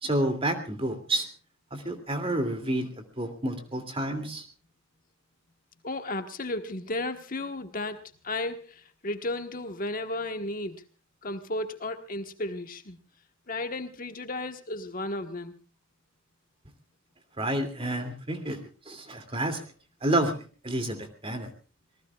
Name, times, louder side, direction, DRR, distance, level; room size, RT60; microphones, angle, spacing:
voice 1, 0.0-1.3 1.7-2.9 3.2-4.4 17.4-18.6 18.9-19.7 20.0-21.5, right 1 dB, 30° right, 7 dB, 2.7 m, -29 dB
voice 2, 5.8-10.8 11.2-13.0 13.5-15.5, left 2 dB, 45° left, 7 dB, 1.4 m, -34 dB
26.5 x 19.0 x 2.4 m, 0.33 s
head